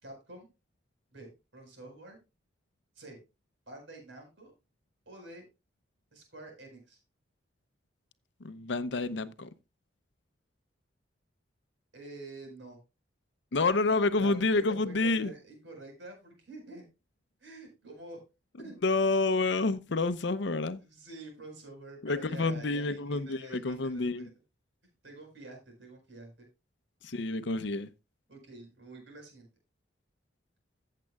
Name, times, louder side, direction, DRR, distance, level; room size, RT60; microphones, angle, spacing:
voice 1, 0.0-0.5 1.1-2.2 2.9-3.2 3.7-4.5 5.0-5.4 6.1-7.0 11.9-12.8 14.2-16.8 17.4-18.2 18.6-18.7 20.9-24.3 25.0-26.5 28.3-29.5, right 2 dB, 75° right, 4.8 m, -48 dB
voice 2, 8.4-9.5 13.5-15.3 18.8-20.8 22.0-24.3 27.0-27.9, left 3 dB, 70° left, 0.7 m, -28 dB
15.0 x 7.6 x 2.3 m
head